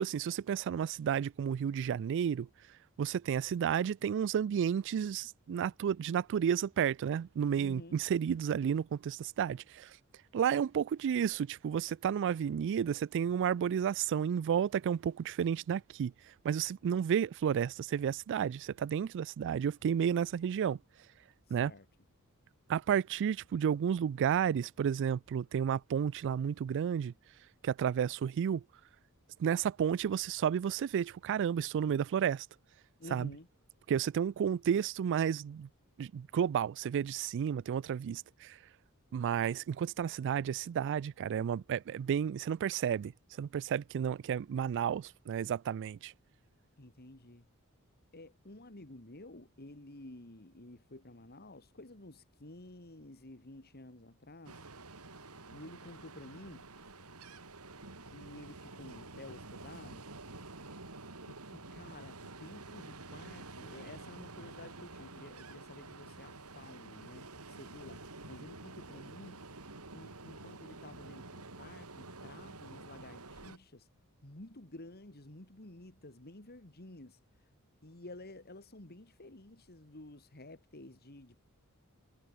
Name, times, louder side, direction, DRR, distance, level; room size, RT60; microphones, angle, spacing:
voice 1, 0.0-2.5 3.0-10.0 10.3-16.1 16.4-20.8 21.5-21.7 22.7-27.1 27.6-28.6 29.4-32.5 33.1-33.3 33.9-35.7 36.0-38.6 39.1-43.1 43.4-46.1, right 8 dB, 55° right, 0.3 m, -32 dB
voice 2, 7.5-8.0 21.5-21.9 33.0-33.5 46.8-47.4 48.1-54.7 55.5-56.6 58.0-60.0 61.3-69.4 69.9-73.9 74.2-77.5 77.8-81.4, left 2 dB, 45° left, 2.7 m, -52 dB
Ocean, 54.4-73.6, right 3 dB, 90° right, 4.0 m, -49 dB
head